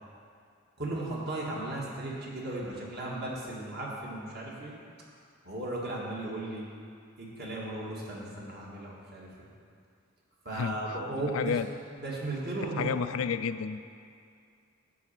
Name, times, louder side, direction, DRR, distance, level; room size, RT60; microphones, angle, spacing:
voice 1, 0.8-4.7 5.4-6.6 7.2-9.3 10.5-11.5 12.0-12.9, right 2 dB, 55° right, -4 dB, 1.9 m, -36 dB
voice 2, 11.3-11.7 12.8-13.8, left 6 dB, 85° left, 11 dB, 0.4 m, -30 dB
10.5 x 4.2 x 7.5 m, 2.4 s
head